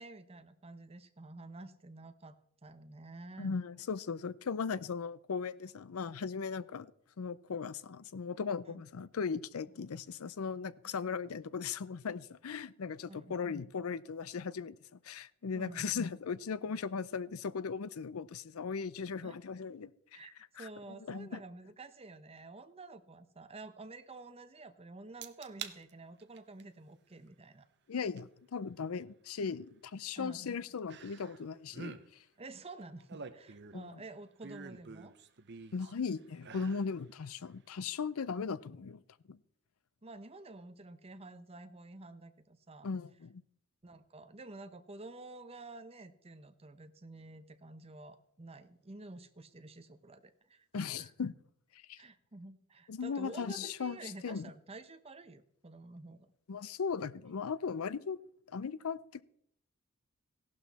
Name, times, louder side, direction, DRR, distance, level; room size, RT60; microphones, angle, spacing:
voice 1, 0.0-3.5 8.6-8.8 13.1-13.4 15.5-15.9 19.2-19.4 20.1-20.3 20.6-27.7 30.2-30.5 32.4-35.1 40.0-42.9 43.8-51.1 52.0-56.3, right 2 dB, 30° right, 0.8 m, -50 dB
voice 2, 3.4-6.9 7.2-14.8 15.0-19.9 20.6-21.4 27.9-32.0 33.7-33.9 35.7-39.0 39.3-39.4 42.8-43.4 50.7-51.3 51.9-52.0 52.9-54.5 56.5-58.2 58.5-59.2, left 5 dB, 75° left, 0.5 m, -38 dB
sound 1, 25.2-25.8 26.2-26.6 28.2-28.3 30.9-31.4 31.7-32.0 32.8-33.9 34.4-35.9 36.4-36.9 37.3-37.4, right 6 dB, 55° right, 0.8 m, -47 dB
16.0 x 11.5 x 4.1 m
head